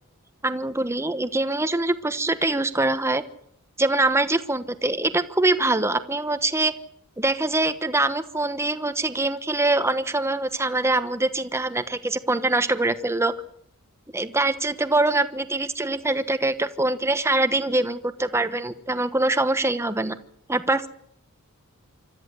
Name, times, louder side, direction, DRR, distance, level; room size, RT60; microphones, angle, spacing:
voice 1, 0.4-3.2 3.8-6.7 7.2-13.3 14.1-20.2 20.5-20.9, right 2 dB, 10° right, 11 dB, 1.1 m, -23 dB
26.0 x 13.5 x 8.2 m, 0.70 s
head